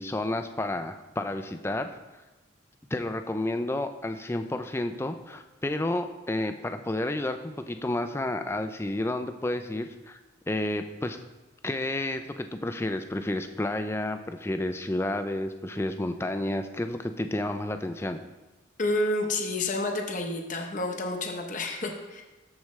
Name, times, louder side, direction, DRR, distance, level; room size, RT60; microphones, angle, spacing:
voice 1, 0.0-2.0 2.9-10.2 10.5-11.2 11.6-18.2, left 1 dB, 10° left, 8 dB, 0.4 m, -31 dB
voice 2, 18.8-22.2, left 2 dB, 40° left, 3 dB, 0.8 m, -29 dB
13.5 x 4.8 x 3.2 m, 1.2 s
head